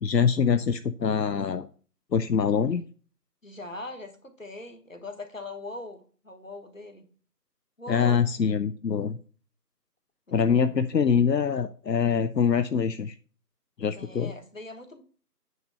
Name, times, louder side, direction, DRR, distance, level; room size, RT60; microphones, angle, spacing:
voice 1, 0.0-1.7 2.1-2.9 7.9-9.2 10.3-13.1 13.8-14.3, left 6 dB, 85° left, 0.7 m, -24 dB
voice 2, 3.4-7.1 7.8-8.2 10.3-10.7 14.0-15.0, left 2 dB, 50° left, 1.4 m, -41 dB
9.3 x 3.1 x 6.5 m
figure-of-eight pair, 175°, 48 cm